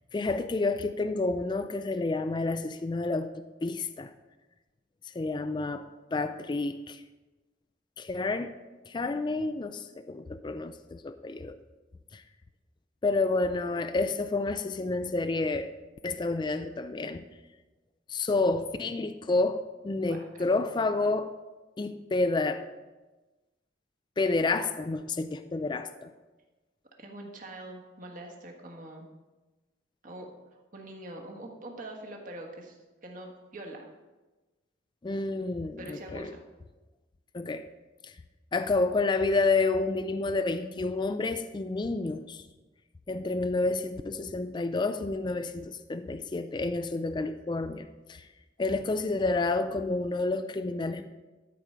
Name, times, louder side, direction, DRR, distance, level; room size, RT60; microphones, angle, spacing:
voice 1, 0.1-4.1 5.0-7.0 8.0-8.5 8.8-11.6 12.1-12.2 13.0-15.7 16.0-17.3 18.1-21.3 21.8-22.6 24.2-26.1 35.0-36.3 37.3-37.7 38.0-38.2 38.5-42.4 43.1-48.3 48.6-51.1, left 3 dB, 25° left, 10 dB, 0.3 m, -29 dB
voice 2, 20.0-20.6 27.0-29.1 30.0-30.3 30.5-33.9 35.8-36.4, right 1 dB, 45° right, 0 dB, 1.4 m, -44 dB
12.5 x 4.8 x 5.6 m, 1.2 s
head